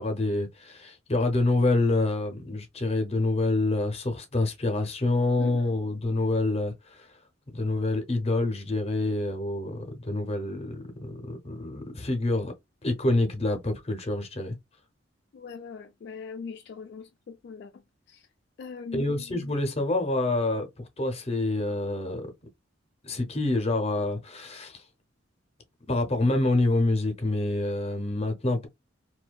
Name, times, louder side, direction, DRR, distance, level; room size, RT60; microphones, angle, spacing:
voice 1, 0.0-7.1 7.5-12.5 12.8-14.5 18.9-22.3 23.0-24.8 25.9-28.7, left 2 dB, 35° left, 0.6 m, -27 dB
voice 2, 5.4-5.8 15.3-17.7 18.1-18.3 18.6-19.5, left 5 dB, 60° left, 0.3 m, -41 dB
2.6 x 2.2 x 2.2 m
head